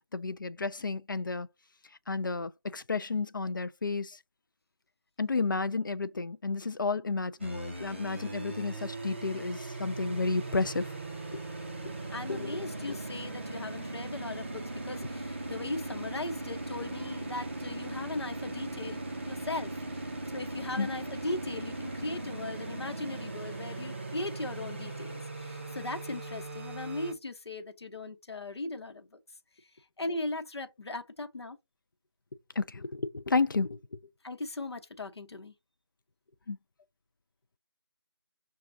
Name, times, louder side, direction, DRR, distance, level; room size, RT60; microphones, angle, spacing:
voice 1, 0.1-1.5 2.1-4.2 5.2-10.9 11.3-11.4 12.3-12.5 20.8-20.9 32.6-33.8 36.5-36.6, left 4 dB, 50° left, 0.4 m, -31 dB
sound 1, 7.4-27.1, right 2 dB, 25° right, 0.6 m, -39 dB
voice 2, 12.1-29.2 29.6-31.6 34.2-35.5, left 2 dB, 80° left, 0.9 m, -38 dB
6.0 x 2.3 x 2.6 m
figure-of-eight pair, 175°, 13 cm